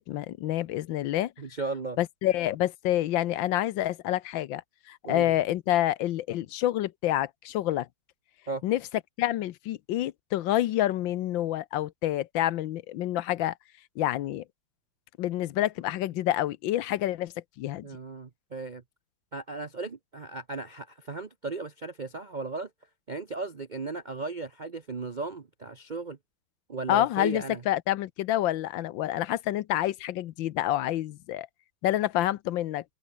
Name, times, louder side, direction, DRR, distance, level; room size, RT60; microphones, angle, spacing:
voice 1, 0.0-1.3 2.0-4.6 4.9-7.9 8.6-8.8 9.2-13.5 14.0-14.4 15.2-17.9 26.9-31.5 31.8-32.8, left 13 dB, 75° left, 1.4 m, -28 dB
voice 2, 1.4-2.0 5.0-5.3 8.5-8.6 17.8-18.8 19.3-22.7 23.1-26.2 26.7-27.6, right 3 dB, 45° right, 0.6 m, -36 dB
omnidirectional pair, 2.2 m